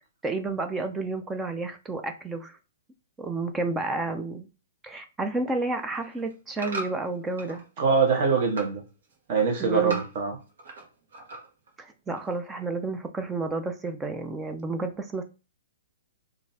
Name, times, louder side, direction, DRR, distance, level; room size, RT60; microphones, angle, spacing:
voice 1, 0.2-2.6 3.2-4.5 4.8-7.6 9.6-10.0 11.8-15.2, right 3 dB, 10° right, 0.3 m, -31 dB
sound 1, 5.8-7.6 8.0-8.8 9.1-10.9 11.1-11.7 12.2-12.3, right 2 dB, 75° right, 1.1 m, -39 dB
voice 2, 7.8-8.8 9.3-10.3, right 5 dB, 40° right, 1.1 m, -23 dB
3.7 x 2.5 x 2.7 m
hypercardioid pair, 150°, 0 cm